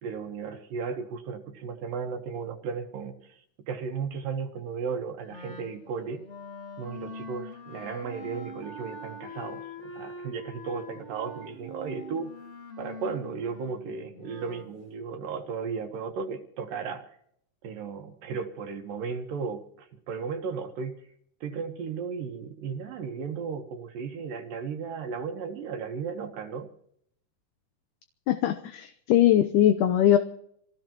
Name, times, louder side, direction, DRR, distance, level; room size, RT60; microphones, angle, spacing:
voice 1, 0.0-6.3 6.8-12.3 12.8-17.1 17.6-21.1 21.4-26.7, right 5 dB, 75° right, 6 dB, 2.8 m, -35 dB
Wind instrument woodwind instrument, 5.3-14.7, left 2 dB, 35° left, 1.2 m, -43 dB
voice 2, 28.3-30.2, left 11 dB, 70° left, 8 dB, 2.1 m, -21 dB
26.0 x 17.5 x 3.0 m, 0.70 s
omnidirectional pair, 4.1 m